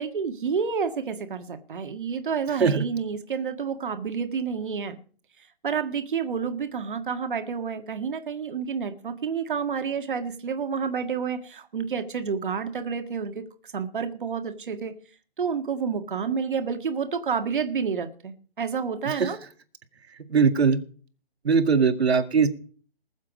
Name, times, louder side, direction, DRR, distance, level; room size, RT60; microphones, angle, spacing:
voice 1, 0.0-5.0 5.4-14.9 15.4-19.4, right 6 dB, 55° right, 7 dB, 1.7 m, -29 dB
voice 2, 20.3-20.8 21.4-22.5, right 5 dB, 85° right, 9 dB, 1.9 m, -20 dB
20.0 x 7.4 x 5.2 m, 0.43 s
hypercardioid pair, 180°, 31 cm